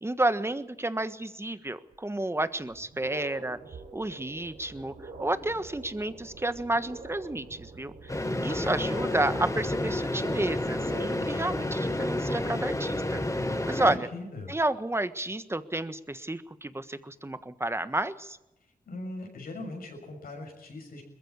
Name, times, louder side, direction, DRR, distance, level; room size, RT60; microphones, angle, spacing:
voice 1, 0.0-3.6 3.9-4.9 5.2-14.1 14.5-18.4, right 2 dB, 15° right, 12 dB, 1.4 m, -31 dB
sound 1, 1.9-2.0 2.6-11.4, right 4 dB, 75° right, 4.7 m, -46 dB
sound 2, 8.1-14.0, left 1 dB, 20° left, 4.6 m, -30 dB
voice 2, 8.5-8.8 13.9-14.5 18.9-21.0, left 2 dB, 80° left, 2 dB, 6.7 m, -40 dB
21.5 x 15.0 x 8.7 m, 0.93 s
cardioid pair, 50°, 15 cm